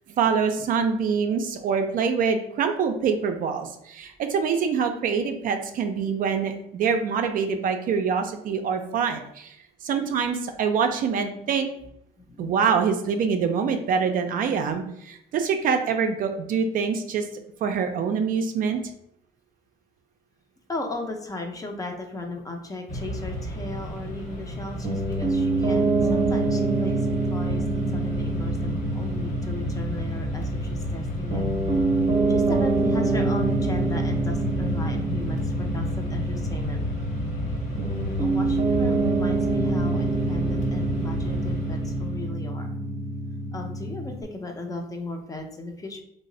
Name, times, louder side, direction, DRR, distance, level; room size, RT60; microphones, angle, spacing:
voice 1, 0.1-9.6 9.8-11.7 12.4-17.3 17.6-18.8, right 6 dB, 55° right, 6 dB, 0.4 m, -25 dB
voice 2, 12.2-12.6 20.7-31.5 32.3-36.8 37.8-42.7 43.5-46.0, left 2 dB, 20° left, 3 dB, 0.5 m, -36 dB
Mechanisms, 22.9-42.3, equal, 45° left, 1.0 m, -32 dB
Piano, 24.8-44.2, right 2 dB, 30° right, 0.8 m, -26 dB
3.1 x 2.0 x 3.7 m, 0.76 s
cardioid pair, 110°, 17 cm